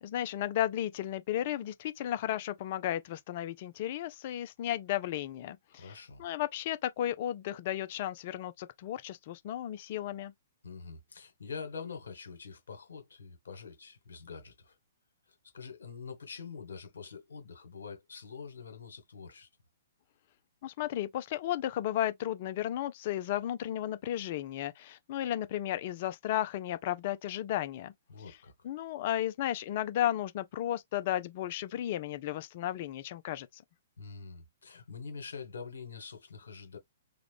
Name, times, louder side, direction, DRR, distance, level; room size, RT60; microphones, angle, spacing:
voice 1, 0.0-10.3 20.6-27.9 28.3-28.4 28.6-33.6, left 12 dB, 45° left, 0.4 m, -34 dB
voice 2, 5.7-6.2 10.6-14.7 15.5-19.5 28.1-28.5 34.0-36.8, left 5 dB, 70° left, 1.4 m, -45 dB
3.7 x 2.2 x 3.3 m
figure-of-eight pair, 120°, 0 cm